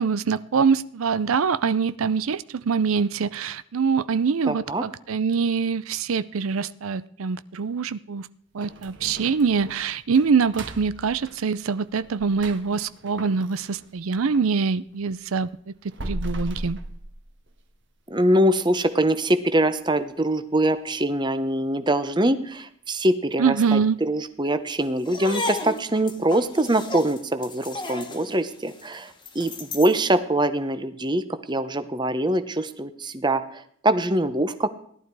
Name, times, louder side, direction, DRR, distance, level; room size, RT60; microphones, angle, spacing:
voice 1, 0.0-8.3 8.5-15.5 15.8-16.8 23.4-24.0, right 5 dB, 80° right, 16 dB, 0.5 m, -24 dB
voice 2, 4.4-4.8 18.1-29.1 29.3-31.2 31.5-34.7, right 1 dB, 20° right, 11 dB, 0.9 m, -23 dB
sound 1, 8.6-14.5 14.9-17.8 18.1-18.2 18.7-18.8 19.3-19.7 20.0-20.1 20.6-20.7, right 1 dB, 55° right, 1.5 m, -38 dB
sound 2, 25.0-30.0, left 2 dB, 20° left, 1.5 m, -34 dB
17.5 x 11.5 x 4.7 m, 0.63 s
head